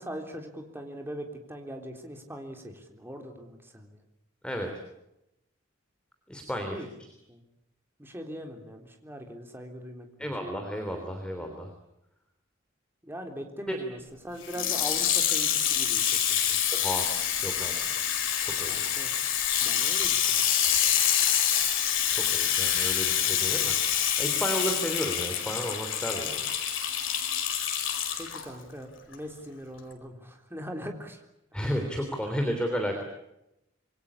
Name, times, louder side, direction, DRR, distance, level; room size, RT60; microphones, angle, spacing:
voice 1, 0.0-4.0 6.6-6.9 7.3-7.4 8.0-10.3 13.0-16.6 18.7-19.1 19.6-20.4 28.2-31.2 31.5-31.6, equal, 10° right, 3 dB, 3.7 m, -41 dB
voice 2, 6.3-6.8 10.2-11.7 13.7-13.8 16.7-17.1 17.4-18.0 18.4-18.7 22.1-26.4 26.7-26.8 31.5-33.0, equal, 5° left, 3 dB, 3.2 m, -33 dB
Water tap faucet / Sink (filling or washing), 14.4-28.4 29.1-29.2, left 9 dB, 70° left, 4.8 m, -26 dB
27.0 x 22.5 x 8.7 m, 0.87 s
head